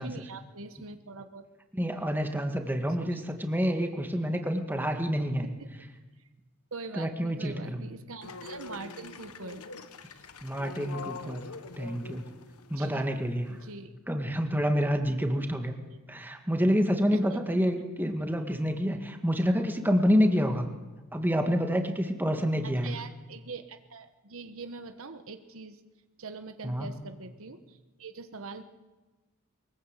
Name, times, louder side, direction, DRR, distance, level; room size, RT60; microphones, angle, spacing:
voice 1, 0.0-1.4 3.0-3.2 5.4-5.8 6.7-9.6 10.1-10.2 12.8-13.1 13.5-14.0 15.4-15.5 15.9-16.0 17.1-17.6 22.6-25.8 26.2-28.6, right 3 dB, 65° right, 8 dB, 1.3 m, -43 dB
voice 2, 1.7-5.5 7.0-7.8 10.4-11.5 11.8-12.3 12.7-13.6 14.1-15.7 16.1-20.7 21.1-22.9 26.6-26.9, equal, 10° right, 4 dB, 1.9 m, -28 dB
sound 1, 8.2-13.7, left 4 dB, 90° left, 1.3 m, -44 dB
23.0 x 20.5 x 8.3 m, 1.2 s
head